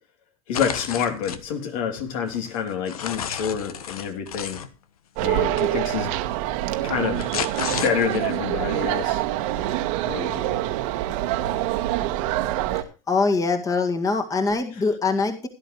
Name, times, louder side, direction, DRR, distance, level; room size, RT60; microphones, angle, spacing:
sound 1, 0.5-1.4 2.0-4.7 5.6-5.7 6.9-8.3, left 8 dB, 85° left, 1.2 m, -32 dB
voice 1, 0.5-4.6 5.2-6.1 6.5-7.3 7.7-9.2 10.0-10.6, left 7 dB, 70° left, 6 dB, 3.0 m, -28 dB
sound 2, 5.2-12.8, right 14 dB, 60° right, 1.4 m, -25 dB
voice 2, 13.1-15.5, left 4 dB, 20° left, 5 dB, 1.9 m, -23 dB
17.0 x 11.0 x 3.1 m, 0.31 s
hypercardioid pair, 110°, 18 cm